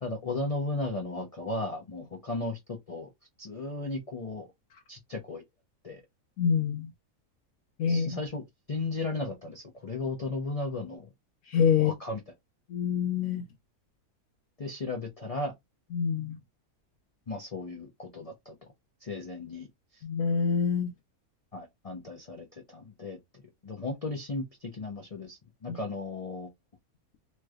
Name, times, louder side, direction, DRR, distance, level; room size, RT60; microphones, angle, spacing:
voice 1, 0.0-3.1 3.4-4.5 4.9-5.4 5.8-6.0 7.9-8.4 8.7-11.1 11.8-12.2 14.6-15.5 17.3-18.5 19.0-19.7 19.9-20.0 21.5-26.5, left 2 dB, 40° left, 0.5 m, -35 dB
voice 2, 6.4-6.9 7.8-8.2 11.5-11.9 12.7-13.4 15.9-16.4 20.0-20.9 25.7-25.8, left 7 dB, 75° left, 1.1 m, -26 dB
3.2 x 3.0 x 2.4 m
omnidirectional pair, 1.6 m